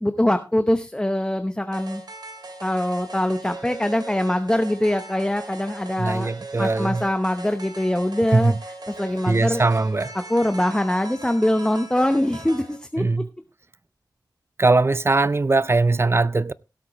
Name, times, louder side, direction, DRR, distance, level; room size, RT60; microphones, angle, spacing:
voice 1, 0.0-2.0 2.6-6.3 6.6-8.5 9.0-9.6 10.1-13.0, left 1 dB, 10° left, 0.8 m, -23 dB
sound 1, 1.7-12.8, right 2 dB, 70° right, 2.6 m, -39 dB
voice 2, 6.0-7.0 8.3-8.6 9.3-10.2 13.0-13.3 14.6-16.5, right 3 dB, 35° right, 0.5 m, -20 dB
17.0 x 8.3 x 3.0 m
wide cardioid pair, 60°, 7 cm